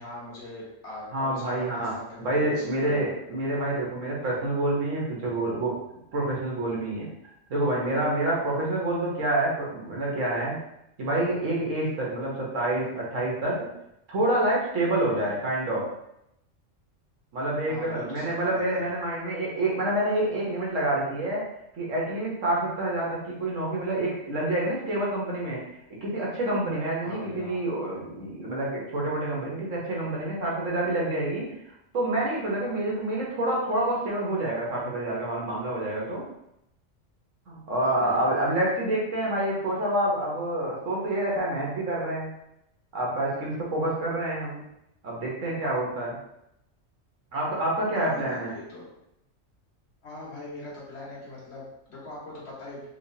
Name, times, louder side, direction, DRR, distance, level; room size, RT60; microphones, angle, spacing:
voice 1, 0.0-3.1 15.0-15.3 17.7-18.9 27.0-27.6 37.8-38.3 47.9-48.9 50.0-52.9, left 2 dB, 55° left, -6 dB, 1.4 m, -41 dB
voice 2, 1.1-1.9 2.2-5.8 6.1-7.1 7.5-10.6 11.0-13.7 14.1-15.8 17.3-21.4 21.7-25.6 26.0-31.5 31.9-36.2 37.5-42.3 42.9-44.6 45.0-46.2 47.3-48.5, right 1 dB, 75° right, -3 dB, 1.4 m, -27 dB
3.6 x 3.0 x 2.7 m, 0.80 s
omnidirectional pair, 1.3 m